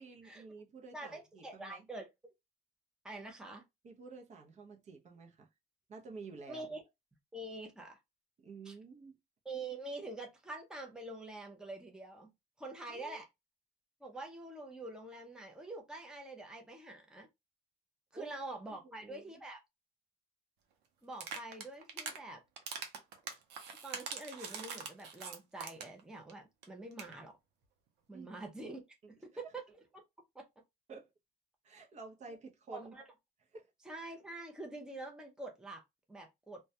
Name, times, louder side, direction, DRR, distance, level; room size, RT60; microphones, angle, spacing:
voice 1, 0.0-1.9 3.8-5.5 5.9-6.7 8.4-9.2 12.9-13.2 18.1-18.4 18.7-19.3 28.1-28.3 29.0-29.1 30.9-31.1 31.6-33.0 33.5-33.7, right 4 dB, 45° right, 0.6 m, -51 dB
voice 2, 0.9-2.1 3.0-3.6 6.5-6.8 7.3-8.0 8.6-8.7 9.4-12.3 12.6-13.3 14.0-17.3 18.1-19.6 21.0-22.4 23.8-27.4 28.1-28.8 29.2-29.8 30.3-30.4 32.7-33.0 33.9-35.8 36.1-36.6, right 2 dB, 5° right, 0.6 m, -46 dB
sound 1, 21.1-22.2 22.6-26.0 26.3-26.4 26.6-26.7 26.9-27.1, right 6 dB, 90° right, 0.6 m, -43 dB
2.2 x 2.2 x 2.7 m
cardioid pair, 110°, 17 cm